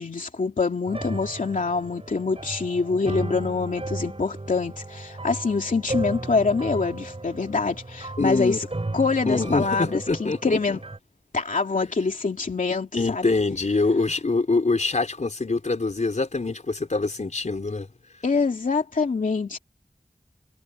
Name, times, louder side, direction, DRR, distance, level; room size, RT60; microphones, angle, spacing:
voice 1, 0.0-8.6 8.9-10.8 11.3-13.3 18.2-19.6, left 4 dB, 90° left, 2.5 m, -25 dB
sound 1, 0.9-11.0, right 2 dB, 45° right, 6.4 m, -35 dB
voice 2, 8.2-8.6 9.3-10.8 12.9-17.9, left 3 dB, 65° left, 4.2 m, -24 dB
wide cardioid pair, 55°, 13 cm